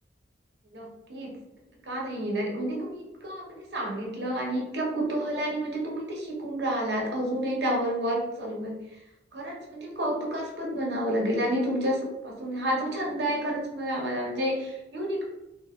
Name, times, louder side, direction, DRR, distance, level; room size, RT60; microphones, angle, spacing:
voice 1, 0.7-1.3 1.8-8.8 9.3-15.3, right 1 dB, 70° right, -2 dB, 0.8 m, -30 dB
3.8 x 2.1 x 2.3 m, 0.92 s
head